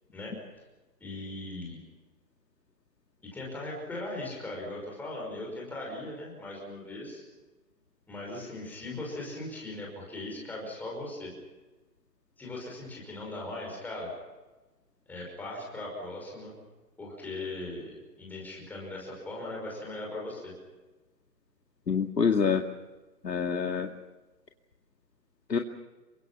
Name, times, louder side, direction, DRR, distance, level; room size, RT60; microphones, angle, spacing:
voice 1, 1.0-1.8 3.3-7.2 8.1-11.3 12.4-14.1 15.1-16.6 17.0-20.5, left 2 dB, 5° left, -2 dB, 5.4 m, -39 dB
voice 2, 21.9-22.6 23.2-23.9 25.5-25.6, left 6 dB, 75° left, 4 dB, 2.4 m, -26 dB
29.5 x 24.0 x 5.8 m, 1.2 s
hypercardioid pair, 160°, 50 cm